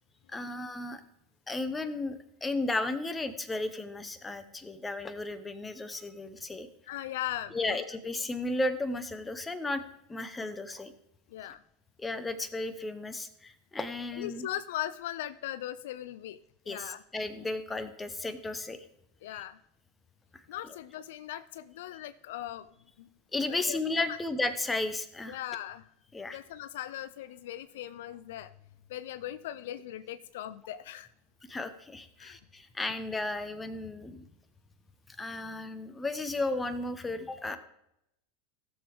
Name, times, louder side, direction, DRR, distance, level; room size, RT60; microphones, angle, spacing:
voice 1, 0.3-1.0 1.5-6.7 7.5-9.8 10.1-10.9 12.0-14.5 16.7-18.8 19.3-19.4 20.3-20.4 23.3-25.4 26.1-26.4 31.5-34.3 35.2-37.6, left 2 dB, 15° left, 11 dB, 0.9 m, -34 dB
voice 2, 6.8-7.8 11.3-11.6 14.1-16.4 16.7-17.0 19.2-19.6 20.5-22.7 23.0-23.1 23.5-24.2 25.3-25.9 26.3-28.5 28.9-31.1 32.2-32.4, left 12 dB, 65° left, 14 dB, 0.3 m, -39 dB
16.0 x 7.0 x 3.5 m, 0.80 s
figure-of-eight pair, 85°, 0 cm